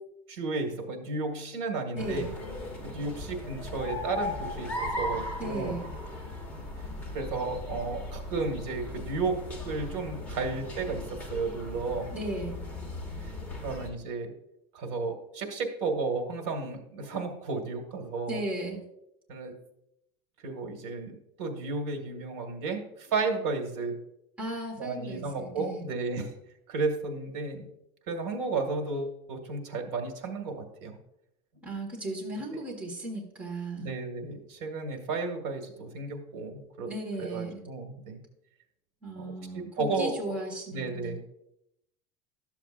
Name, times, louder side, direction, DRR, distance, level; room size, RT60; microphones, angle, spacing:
voice 1, 0.3-2.3 2.8-5.7 7.1-12.1 13.2-13.3 13.6-14.3 14.7-18.4 19.3-19.5 20.4-24.0 24.8-26.3 26.7-27.7 28.1-31.0 33.8-36.9 37.2-38.2 39.2-40.3 40.7-41.2, right 3 dB, 60° right, 4 dB, 1.8 m, -33 dB
voice 2, 1.9-2.3 5.4-5.9 12.1-12.6 18.3-18.8 24.4-25.8 31.6-33.9 36.9-37.6 39.0-41.1, right 1 dB, 10° right, -4 dB, 1.5 m, -36 dB
sound 1, 2.0-13.9, left 1 dB, 10° left, 1.3 m, -38 dB
12.0 x 7.1 x 2.5 m, 0.80 s
cardioid pair, 180°, 16 cm